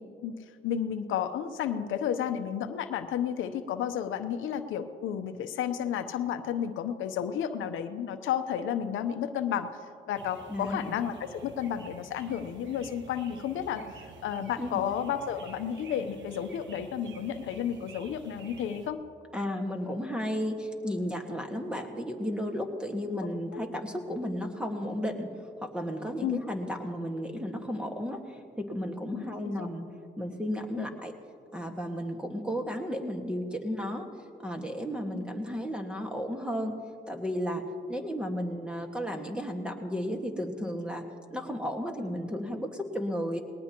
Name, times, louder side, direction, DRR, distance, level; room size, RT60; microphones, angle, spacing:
voice 1, 0.6-9.7 10.1-19.0 23.5-23.6 26.2-26.4 29.1-29.3 29.6-29.7 30.8-30.9, left 9 dB, 80° left, 8 dB, 0.8 m, -32 dB
sound 1, 10.1-18.9, right 5 dB, 70° right, 1.3 m, -50 dB
voice 2, 10.5-11.0 14.6-14.8 19.3-25.3 25.6-29.9 30.2-31.1 31.5-34.1 34.4-36.8 37.1-41.0 41.3-43.4, equal, 5° right, 3 dB, 1.7 m, -33 dB
20.0 x 18.5 x 3.0 m, 2.3 s
cardioid pair, 90°, 20 cm